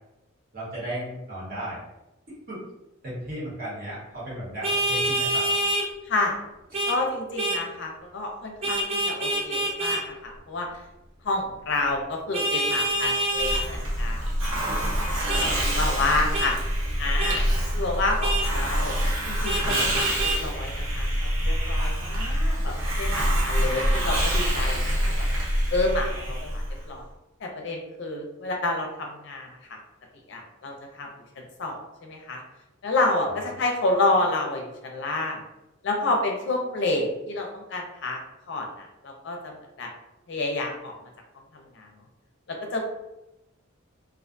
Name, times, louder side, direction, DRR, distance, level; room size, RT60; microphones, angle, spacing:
voice 1, 0.5-1.8 2.5-2.6 3.0-5.5 6.7-6.8 8.6-8.7, right 1 dB, 50° right, -7 dB, 1.2 m, -35 dB
Vehicle horn car horn honking, 4.6-5.9 6.7-7.0 7.4-7.6 8.6-10.0 12.3-13.6 15.3-15.5 16.3-16.5 17.2-17.4 18.2-18.5 19.4-20.4, right 1 dB, 30° right, 0.3 m, -26 dB
voice 2, 6.1-6.4 6.9-10.7 11.2-14.3 14.7-14.8 15.0-16.6 17.0-18.9 19.3-21.1 21.4-25.1 25.7-27.0 27.4-29.5 30.3-31.1 31.6-32.4 32.8-35.4 35.8-38.2 38.5-39.9 40.3-40.9 41.5-41.9 42.5-42.8, left 2 dB, 65° left, 1 dB, 0.5 m, -29 dB
Hiss, 13.3-26.8, equal, 90° right, 0.7 m, -26 dB
2.4 x 2.2 x 2.5 m, 0.93 s
head